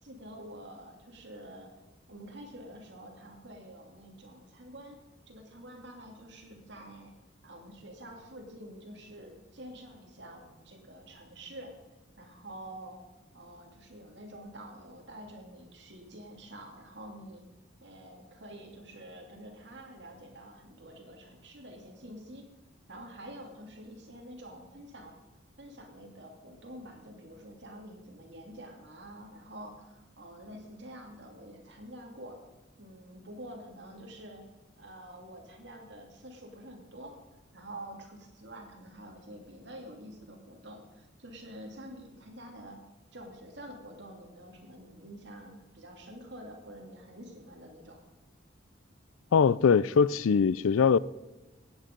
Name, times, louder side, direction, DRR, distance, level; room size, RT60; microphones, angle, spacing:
voice 1, 0.0-1.7 2.1-5.0 5.3-7.1 7.4-11.7 12.2-13.0 13.3-17.4 17.8-22.5 22.9-25.2 25.6-32.4 32.8-34.4 34.8-37.2 37.5-42.8 43.1-48.0, right 1 dB, 60° right, 2.7 m, -47 dB
voice 2, 49.3-51.0, left 6 dB, 85° left, 0.4 m, -22 dB
16.0 x 9.1 x 5.3 m
head